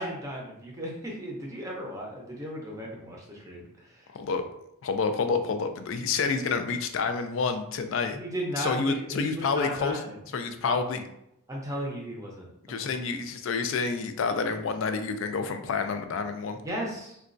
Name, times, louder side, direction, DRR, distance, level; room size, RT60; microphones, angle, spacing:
voice 1, 0.0-4.1 8.1-10.2 10.6-11.0 11.5-12.8 16.6-17.2, equal, 15° right, -2 dB, 0.6 m, -35 dB
voice 2, 4.1-4.4 4.8-8.2 8.6-10.0 10.3-11.0 12.7-16.6, left 4 dB, 60° left, 8 dB, 0.3 m, -28 dB
3.9 x 2.2 x 2.5 m, 0.80 s
head